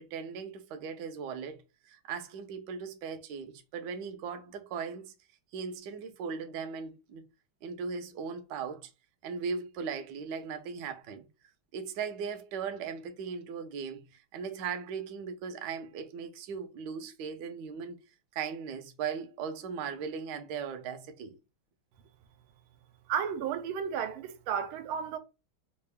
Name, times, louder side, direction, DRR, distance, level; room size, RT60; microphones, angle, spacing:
voice 1, 0.0-1.6 1.9-5.0 5.5-7.2 7.6-8.9 9.2-11.3 11.7-14.0 14.3-18.0 18.3-21.3, right 6 dB, 70° right, 1.1 m, -38 dB
voice 2, 23.1-25.2, right 8 dB, 90° right, 1.5 m, -33 dB
3.7 x 2.4 x 3.4 m
omnidirectional pair, 2.3 m